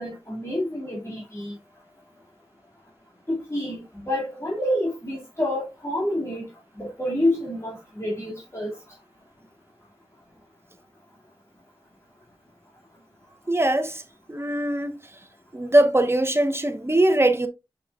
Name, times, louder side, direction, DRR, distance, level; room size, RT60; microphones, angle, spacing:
voice 1, 0.0-1.6 3.3-6.5 6.8-8.7, left 1 dB, 25° left, 2.4 m, -28 dB
voice 2, 13.5-14.0 14.3-14.9 15.5-17.5, right 1 dB, 25° right, 1.2 m, -21 dB
7.1 x 5.9 x 2.4 m
wide cardioid pair, 40°, 10 cm